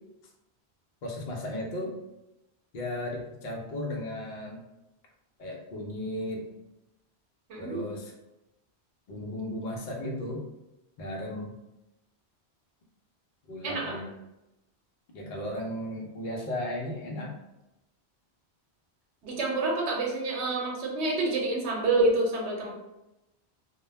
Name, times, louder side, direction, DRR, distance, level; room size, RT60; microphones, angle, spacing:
voice 1, 1.0-1.9 2.7-4.6 5.4-6.4 7.6-8.1 9.1-10.4 11.0-11.5 13.5-14.1 15.1-17.3, left 1 dB, 55° left, -1 dB, 0.6 m, -35 dB
voice 2, 13.6-14.0 19.2-22.7, right 2 dB, 90° right, -1 dB, 0.9 m, -27 dB
2.1 x 2.1 x 3.1 m, 0.92 s
omnidirectional pair, 1.1 m